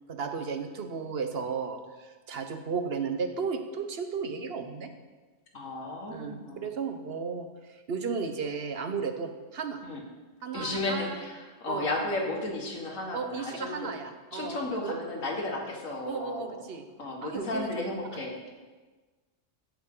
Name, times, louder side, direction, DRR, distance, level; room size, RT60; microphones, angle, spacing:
voice 1, 0.1-4.9 6.1-9.8 10.4-11.2 11.7-11.9 13.1-15.0 16.1-16.8 17.2-17.9, right 5 dB, 50° right, 7 dB, 1.1 m, -34 dB
voice 2, 5.5-6.7 9.8-10.0 10.5-13.9 14.3-16.6 17.0-18.5, left 2 dB, 80° left, 0 dB, 2.2 m, -34 dB
15.0 x 8.7 x 3.9 m, 1.3 s
omnidirectional pair, 1.4 m